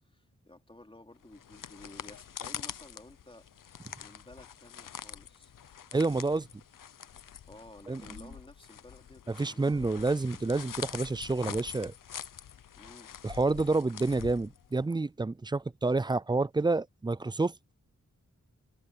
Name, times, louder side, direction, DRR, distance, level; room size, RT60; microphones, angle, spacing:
voice 1, 0.0-3.4 4.0-5.5 7.5-10.0 12.8-13.1, left 1 dB, 15° left, 3.5 m, -53 dB
sound 1, 1.2-14.9, left 9 dB, 90° left, 0.7 m, -45 dB
voice 2, 5.9-6.5 7.9-8.0 9.3-11.9 13.2-17.5, right 3 dB, 15° right, 0.3 m, -29 dB
wide cardioid pair, 100°, 31 cm